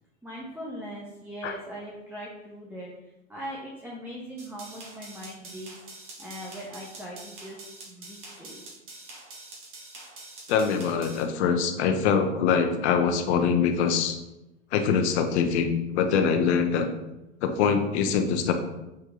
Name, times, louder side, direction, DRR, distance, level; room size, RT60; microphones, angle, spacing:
voice 1, 0.2-2.9 3.3-5.7 6.2-8.6, equal, 5° right, -5 dB, 1.5 m, -40 dB
sound 1, 4.4-11.2, right 2 dB, 35° right, 2.4 m, -45 dB
voice 2, 10.5-14.2 14.7-16.9 17.4-18.5, left 6 dB, 65° left, 6 dB, 1.1 m, -24 dB
7.3 x 4.6 x 3.9 m, 0.96 s
hypercardioid pair, 105°, 35 cm